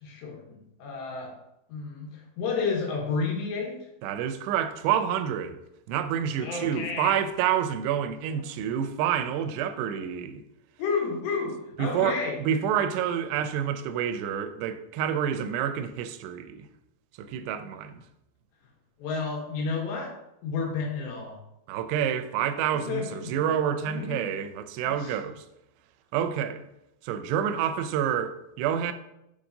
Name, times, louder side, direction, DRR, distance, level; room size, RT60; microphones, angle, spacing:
voice 1, 0.0-1.3 1.7-3.7 6.4-7.1 10.8-12.4 19.0-20.1 20.4-21.4 22.7-23.4 23.8-24.2 24.8-25.2, left 4 dB, 85° left, 3.9 m, -31 dB
voice 2, 4.0-5.6 5.9-10.4 11.8-16.7 17.2-18.0 21.7-25.4 26.1-26.6 27.0-28.9, right 9 dB, 90° right, 2.7 m, -28 dB
7.6 x 6.9 x 2.7 m
omnidirectional pair, 4.8 m